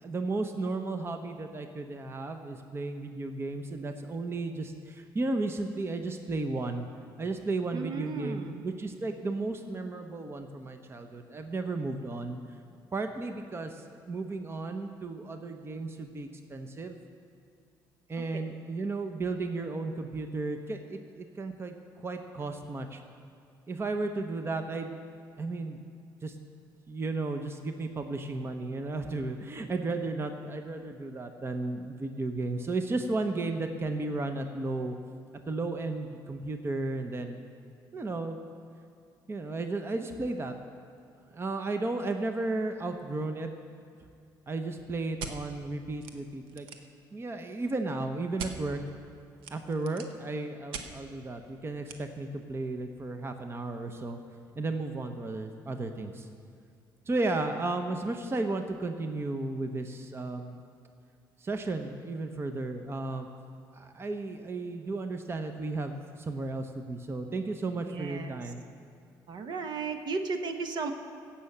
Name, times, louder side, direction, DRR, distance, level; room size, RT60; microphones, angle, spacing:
voice 1, 0.0-6.9 7.2-12.4 12.9-17.0 18.1-23.0 23.7-24.9 25.4-25.8 26.2-26.4 26.9-35.0 35.5-37.4 37.9-38.4 39.3-40.5 41.3-43.5 44.5-46.7 47.1-48.8 49.5-54.2 54.6-56.3 57.1-60.6 61.4-63.3 63.7-68.6, right 2 dB, 30° right, 6 dB, 0.8 m, -34 dB
voice 2, 7.7-8.6 18.2-18.3 67.9-68.4 69.3-70.9, right 4 dB, 60° right, 6 dB, 1.0 m, -35 dB
sound 1, 45.2-45.4 46.0-46.1 46.4-46.9 48.4-48.5 49.4-50.2 50.7-50.9 51.9-52.0, right 6 dB, 90° right, 0.8 m, -39 dB
16.0 x 5.7 x 7.2 m, 2.3 s
cardioid pair, 85°, 9 cm